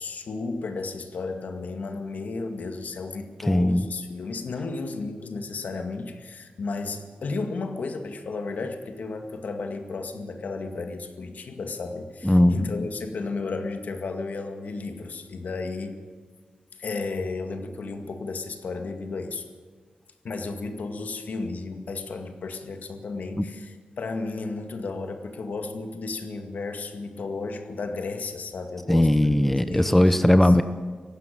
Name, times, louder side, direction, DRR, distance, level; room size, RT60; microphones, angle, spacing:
voice 1, 0.0-16.0 16.8-19.5 20.2-29.3 29.7-30.5, left 3 dB, 65° left, 6 dB, 2.1 m, -33 dB
voice 2, 3.5-3.9 12.2-12.6 23.4-23.5 28.9-30.6, left 1 dB, 5° left, 10 dB, 0.8 m, -19 dB
18.0 x 15.5 x 9.4 m, 1.5 s
wide cardioid pair, 110°, 3 cm